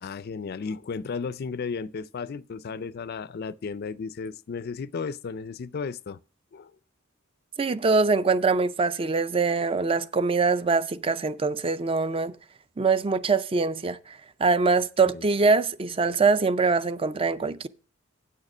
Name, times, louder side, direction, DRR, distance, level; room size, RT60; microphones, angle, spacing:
voice 1, 0.0-6.2 6.5-6.7 15.1-15.3, left 5 dB, 50° left, 0.4 m, -34 dB
voice 2, 7.6-12.4 12.8-17.7, right 4 dB, 25° right, 0.4 m, -23 dB
8.8 x 6.5 x 6.0 m
head